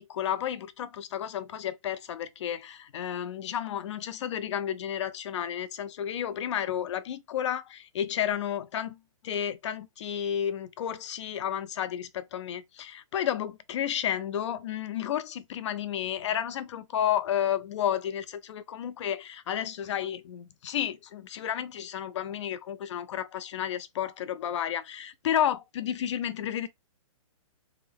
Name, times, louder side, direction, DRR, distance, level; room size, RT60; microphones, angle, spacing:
voice 1, 0.0-9.0 9.2-26.7, left 10 dB, 55° left, 0.5 m, -32 dB
3.5 x 2.1 x 3.5 m
hypercardioid pair, 140°, 17 cm